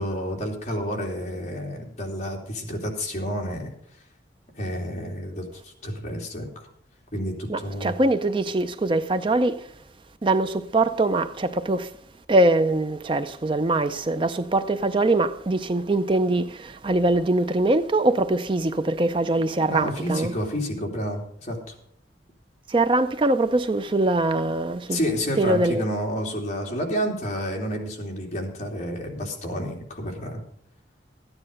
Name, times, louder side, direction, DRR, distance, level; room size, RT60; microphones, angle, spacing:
voice 1, 0.0-3.7 4.6-6.7 7.1-7.9 19.6-21.7 24.9-30.4, equal, 40° left, 2.9 m, -30 dB
voice 2, 7.5-9.7 10.2-11.9 12.3-20.3 22.7-25.0 25.4-25.8, right 2 dB, 30° right, 0.5 m, -22 dB
14.0 x 9.9 x 5.2 m
head